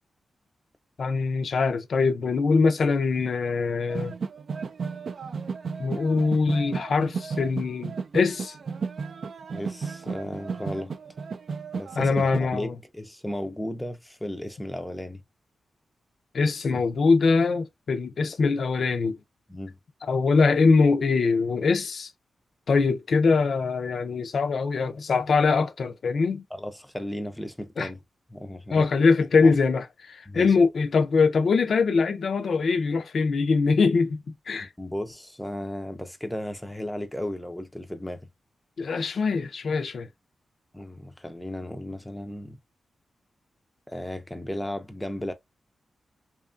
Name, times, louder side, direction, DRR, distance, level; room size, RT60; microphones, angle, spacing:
voice 1, 1.0-4.1 5.8-8.5 12.0-12.7 16.3-19.2 20.1-22.1 22.7-26.4 27.8-27.9 28.7-34.2 34.5-34.7 38.8-40.1, left 4 dB, 65° left, 0.4 m, -23 dB
sound 1, 3.9-12.4, right 5 dB, 60° right, 0.3 m, -34 dB
voice 2, 9.5-10.9 11.7-15.2 19.5-19.8 26.5-28.0 28.3-28.9 29.4-29.5 30.3-30.6 34.6-38.3 40.7-42.6 43.9-45.3, left 1 dB, 5° left, 0.4 m, -35 dB
2.8 x 2.3 x 2.4 m
wide cardioid pair, 115°, 0 cm